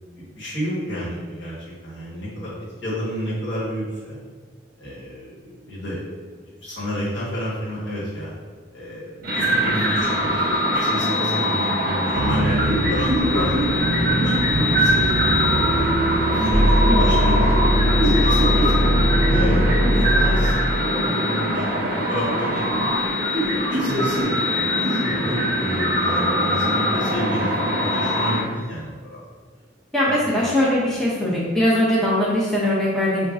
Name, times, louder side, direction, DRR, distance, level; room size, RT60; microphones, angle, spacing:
voice 1, 0.2-1.6 1.8-2.5 2.8-4.2 4.8-6.0 6.6-8.3 8.7-13.5 14.0-18.8 19.3-22.6 23.4-29.2 30.0-30.4, equal, 75° left, -7 dB, 1.3 m, -30 dB
sound 1, 9.2-28.4, equal, 50° right, 0.8 m, -22 dB
sound 2, 12.1-19.5, right 2 dB, 80° right, 0.4 m, -25 dB
sound 3, 16.5-20.5, equal, 25° left, 1.0 m, -19 dB
voice 2, 16.9-17.2 29.9-33.3, left 1 dB, ahead, -6 dB, 0.5 m, -21 dB
5.0 x 2.4 x 2.4 m, 1.5 s
head